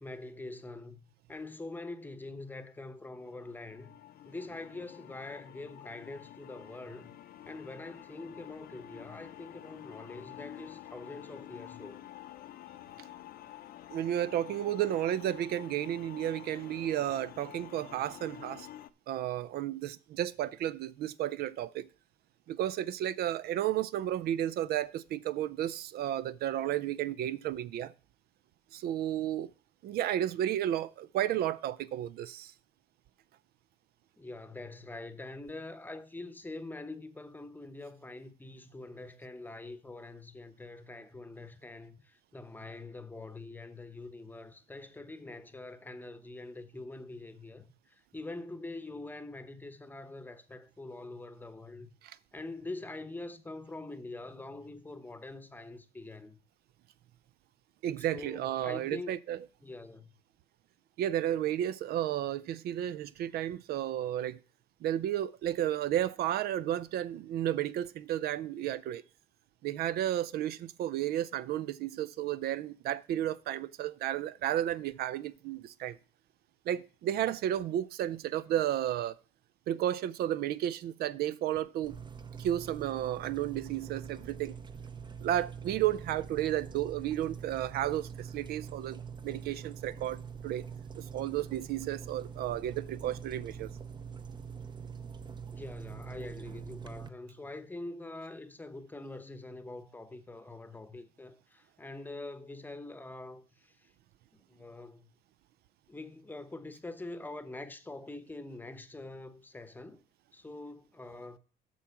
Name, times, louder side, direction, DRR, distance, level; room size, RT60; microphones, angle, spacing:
voice 1, 0.0-4.0 4.3-7.1 7.5-12.1 34.2-51.9 52.3-56.4 58.0-59.1 59.6-60.1 95.5-103.9 104.3-105.1 105.9-110.0 110.3-111.4, left 2 dB, 10° left, 0.9 m, -44 dB
sound 1, 3.1-18.9, left 12 dB, 65° left, 0.6 m, -49 dB
voice 2, 13.9-18.7 19.1-21.9 22.5-27.9 28.7-29.5 29.8-32.5 52.0-52.2 57.8-59.4 61.0-64.4 64.8-69.0 69.6-76.0 76.7-79.2 79.7-82.0 82.4-84.5 85.2-89.0 89.2-90.6 91.0-93.7, right 12 dB, 70° right, 0.5 m, -32 dB
sound 2, 81.8-97.1, right 6 dB, 25° right, 0.6 m, -44 dB
8.2 x 6.2 x 5.8 m
cardioid pair, 110°, 17 cm